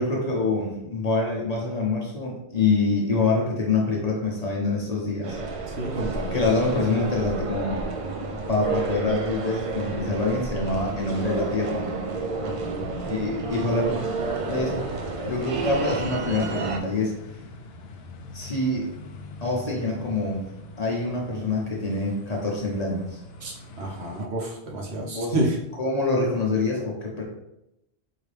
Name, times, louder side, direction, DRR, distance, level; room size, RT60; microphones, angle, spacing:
voice 1, 0.0-5.4 6.3-7.9 8.5-11.9 13.1-14.0 14.5-14.8 15.2-17.1 18.3-18.9 19.4-20.4 20.8-23.2 25.0-25.3 25.8-27.2, left 3 dB, 40° left, -2 dB, 0.8 m, -25 dB
sound 1, 5.2-16.8, right 3 dB, 50° right, 0.4 m, -31 dB
voice 2, 5.7-6.4 12.4-13.0 21.4-21.5 23.4-25.6, right 1 dB, 75° right, -2 dB, 1.1 m, -30 dB
sound 2, 9.6-24.3, left 3 dB, 70° left, 0.8 m, -44 dB
4.9 x 2.8 x 3.3 m, 0.86 s
omnidirectional pair, 1.1 m